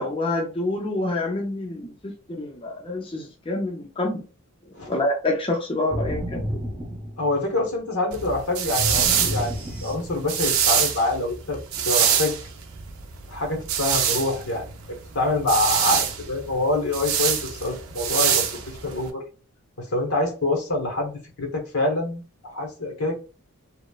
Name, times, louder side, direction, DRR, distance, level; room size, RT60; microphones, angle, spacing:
voice 1, 0.0-2.1 2.4-4.2 4.9-6.5, left 2 dB, 25° left, 0.4 m, -27 dB
sound 1, 5.9-7.6 8.8-10.4, equal, 5° right, 0.7 m, -31 dB
voice 2, 7.2-9.5 9.8-11.6 11.9-12.4 13.3-14.6 15.1-19.2 19.8-23.2, left 2 dB, 85° left, 0.9 m, -26 dB
sound 2, 8.1-19.1, right 8 dB, 75° right, 0.5 m, -25 dB
2.9 x 2.0 x 2.3 m
head